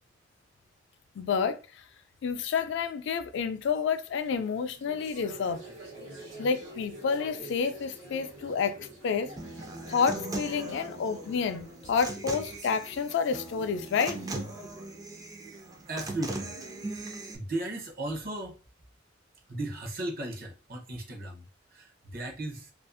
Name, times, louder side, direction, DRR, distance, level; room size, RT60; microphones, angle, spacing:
voice 1, 1.2-1.8 2.2-5.6 6.4-9.3 9.9-14.2, left 6 dB, 65° left, 0.3 m, -29 dB
sound 1, 4.2-14.7, right 1 dB, 90° right, 1.0 m, -48 dB
Human voice / Acoustic guitar, 9.4-17.4, right 2 dB, 20° right, 0.3 m, -39 dB
voice 2, 15.9-16.6 17.3-18.6 19.5-22.7, right 1 dB, 50° right, 0.7 m, -36 dB
2.5 x 2.3 x 2.5 m
head